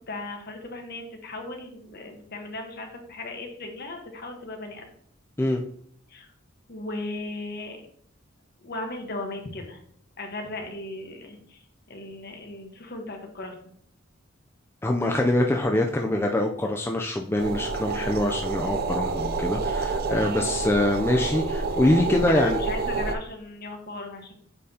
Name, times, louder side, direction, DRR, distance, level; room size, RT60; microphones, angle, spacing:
voice 1, 0.1-4.9 6.1-6.3 6.7-7.8 8.6-9.8 10.2-11.6 11.9-13.7 22.3-24.3, left 2 dB, 50° left, 3 dB, 1.2 m, -37 dB
voice 2, 14.8-22.6, left 1 dB, 10° left, 2 dB, 0.4 m, -24 dB
sound 1, 17.4-23.2, right 4 dB, 50° right, 0.5 m, -28 dB
8.2 x 4.4 x 2.8 m, 0.62 s
head